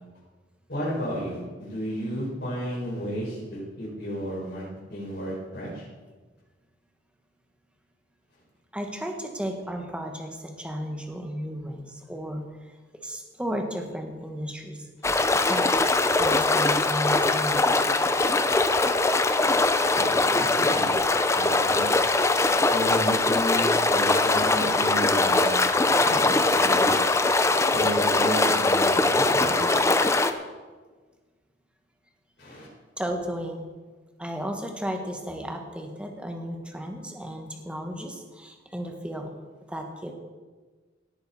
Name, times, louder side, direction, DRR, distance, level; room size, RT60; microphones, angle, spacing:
voice 1, 0.7-5.9 19.9-20.9 21.3-21.9 22.6-27.0 27.7-29.7 32.4-32.7, equal, 60° left, -6 dB, 5.2 m, -33 dB
voice 2, 8.7-14.9 15.3-15.9 16.2-18.2 33.0-33.6 34.2-39.3 39.7-40.1, equal, 5° right, 3 dB, 1.5 m, -34 dB
sound 1, 15.0-30.3, left 2 dB, 15° left, 0.6 m, -22 dB
18.0 x 9.2 x 4.4 m, 1.4 s
head